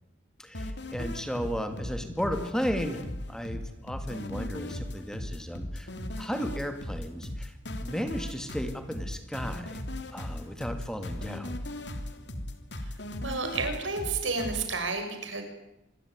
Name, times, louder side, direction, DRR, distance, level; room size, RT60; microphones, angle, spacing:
voice 1, 0.4-5.9 6.2-7.6 7.8-9.8 10.1-11.5, equal, 5° left, 7 dB, 2.3 m, -34 dB
sound 1, 0.5-14.7, left 1 dB, 60° left, 3.0 m, -37 dB
voice 2, 13.2-15.4, right 4 dB, 80° right, 6 dB, 6.7 m, -31 dB
26.0 x 22.5 x 9.7 m, 0.87 s
head